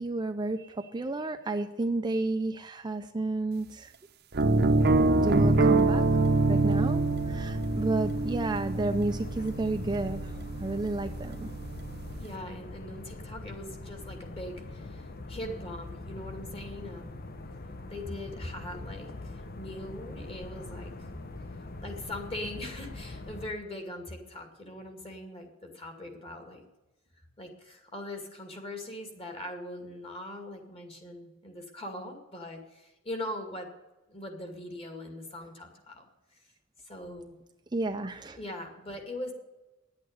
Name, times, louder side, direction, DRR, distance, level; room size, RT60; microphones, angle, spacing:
voice 1, 0.0-3.9 5.1-10.3 10.6-11.5 37.7-38.4, right 2 dB, 20° right, 7 dB, 0.5 m, -31 dB
sound 1, 4.3-12.2, right 2 dB, 55° right, 0.8 m, -26 dB
sound 2, 4.8-23.5, left 2 dB, 50° left, 0.9 m, -42 dB
voice 2, 12.2-17.2 17.9-21.1 21.6-26.6 27.4-33.7 34.1-36.0 36.8-37.4 38.4-39.3, left 1 dB, 30° left, 4 dB, 2.3 m, -41 dB
10.5 x 8.5 x 9.5 m, 1.1 s
head